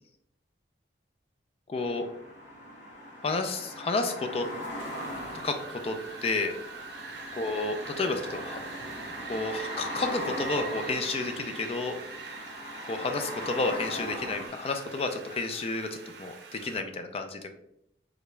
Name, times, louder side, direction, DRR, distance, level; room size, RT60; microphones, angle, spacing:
sound 1, 1.7-14.5, equal, 75° left, 1.4 m, -40 dB
voice 1, 1.7-2.1 3.2-4.5 5.4-5.6 5.8-6.6 7.4-8.6 9.3-12.0 12.9-17.5, left 3 dB, 35° left, 6 dB, 0.3 m, -31 dB
Wind, 4.8-16.8, right 4 dB, 65° right, 0.6 m, -44 dB
3.7 x 2.2 x 3.1 m, 0.77 s
head